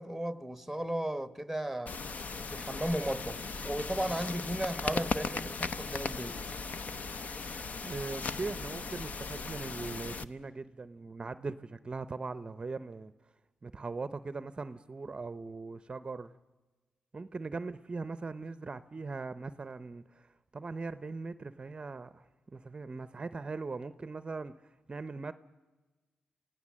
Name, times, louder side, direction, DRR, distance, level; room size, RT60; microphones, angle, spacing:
voice 1, 0.0-2.0 2.5-6.4, right 1 dB, ahead, 1.2 m, -35 dB
sound 1, 1.9-10.2, left 4 dB, 55° left, 0.8 m, -37 dB
voice 2, 7.8-13.1 13.6-16.3 17.1-25.3, right 3 dB, 30° right, 0.6 m, -40 dB
27.5 x 17.0 x 7.4 m
cardioid pair, 90°, 3 cm